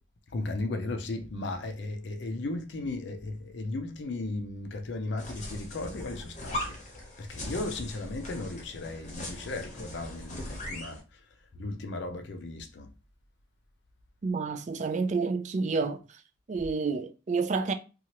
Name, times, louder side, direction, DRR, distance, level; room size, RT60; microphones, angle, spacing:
voice 1, 0.3-6.8 7.2-11.0 11.6-12.9, left 2 dB, 60° left, 0.5 m, -35 dB
sound 1, 5.2-11.0, left 1 dB, 35° left, 0.8 m, -39 dB
voice 2, 14.2-16.2 16.5-17.7, right 4 dB, 35° right, 0.3 m, -29 dB
2.8 x 2.3 x 2.9 m
head